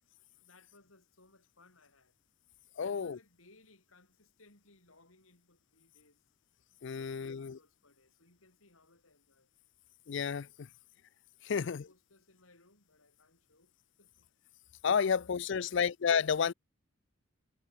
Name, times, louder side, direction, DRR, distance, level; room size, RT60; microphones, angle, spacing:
voice 1, 0.3-2.1 2.8-6.2 7.0-9.5 10.6-11.0 11.5-13.7 14.0-14.3 15.1-15.9, left 2 dB, 70° left, 6.3 m, -64 dB
voice 2, 2.8-3.2 6.8-7.6 10.1-10.7 11.4-11.8 14.8-16.5, left 6 dB, 55° left, 0.4 m, -31 dB
head